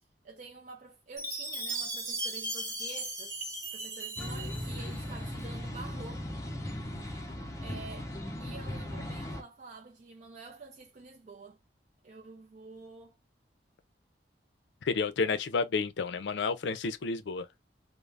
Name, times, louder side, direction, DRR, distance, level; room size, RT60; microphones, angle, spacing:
voice 1, 0.2-3.3 3.7-6.3 7.3-8.1 8.4-11.6 12.0-13.2, right 3 dB, 45° right, 0.4 m, -48 dB
Chime, 1.2-5.3, right 2 dB, 20° right, 1.0 m, -37 dB
sound 1, 4.2-9.4, left 1 dB, 20° left, 0.5 m, -38 dB
voice 2, 14.8-17.5, left 4 dB, 80° left, 0.4 m, -30 dB
2.4 x 2.0 x 3.1 m
head